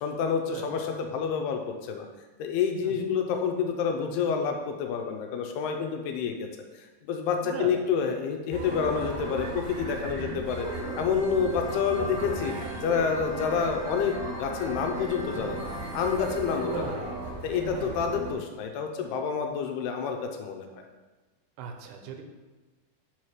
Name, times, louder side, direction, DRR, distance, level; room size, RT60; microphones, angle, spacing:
voice 1, 0.0-2.1 2.4-6.5 6.7-10.7 10.9-12.6 12.8-16.9 17.4-20.8, left 6 dB, 90° left, 4 dB, 2.7 m, -28 dB
voice 2, 7.4-7.7 10.2-10.4 16.5-17.2 17.6-18.1 21.6-22.2, right 6 dB, 90° right, 4 dB, 2.7 m, -39 dB
sound 1, 8.5-18.3, right 2 dB, 50° right, 2.1 m, -36 dB
5.6 x 4.8 x 6.0 m, 1.2 s
omnidirectional pair, 4.6 m